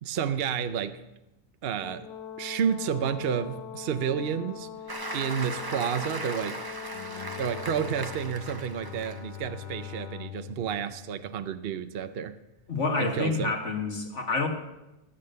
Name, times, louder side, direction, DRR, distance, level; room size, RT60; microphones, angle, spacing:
voice 1, 0.0-1.0 1.6-2.1 2.4-4.7 5.1-6.6 7.4-12.3 13.0-13.5, right 7 dB, 55° right, 10 dB, 0.7 m, -30 dB
Brass instrument, 1.8-8.2, left 9 dB, 80° left, 1.5 m, -42 dB
Applause, 4.9-9.4 9.8-10.0, right 2 dB, 20° right, 0.7 m, -38 dB
Bowed string instrument, 6.8-12.1, left 9 dB, 65° left, 0.4 m, -44 dB
voice 2, 12.7-14.5, left 3 dB, 50° left, 2 dB, 2.1 m, -28 dB
16.0 x 8.5 x 6.7 m, 0.97 s
omnidirectional pair, 1.6 m